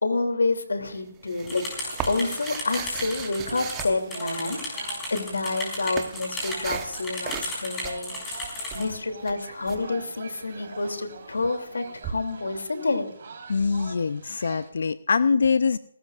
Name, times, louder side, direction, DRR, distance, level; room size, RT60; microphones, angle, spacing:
voice 1, 0.0-4.6 5.1-8.5 8.7-13.1, left 3 dB, 80° left, 6 dB, 2.9 m, -28 dB
sound 1, 0.8-4.7 5.4-7.0 7.2-7.6 7.8-9.8 12.0-12.1, right 9 dB, 15° right, 1.1 m, -37 dB
sound 2, 1.5-8.8, left 1 dB, 10° left, 7.0 m, -34 dB
sound 3, 1.6-14.7, right 5 dB, 45° right, 4.1 m, -44 dB
voice 2, 13.5-15.8, left 5 dB, 60° left, 14 dB, 0.6 m, -23 dB
30.0 x 13.0 x 2.5 m, 0.75 s
hypercardioid pair, 160°, 0 cm